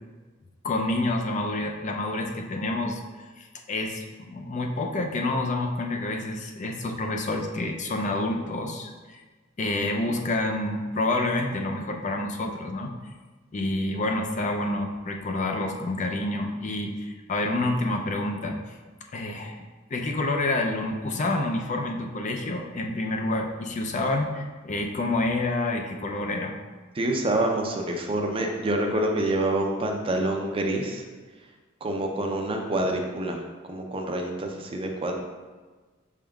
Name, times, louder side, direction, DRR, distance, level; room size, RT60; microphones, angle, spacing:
voice 1, 0.6-3.0 3.4-9.2 9.6-12.9 13.5-18.6 19.1-26.5, left 2 dB, 35° left, 3 dB, 0.4 m, -28 dB
voice 2, 27.0-31.0 31.8-33.4 33.7-35.1, right 1 dB, 25° right, 2 dB, 0.5 m, -27 dB
6.1 x 3.6 x 2.3 m, 1.3 s
head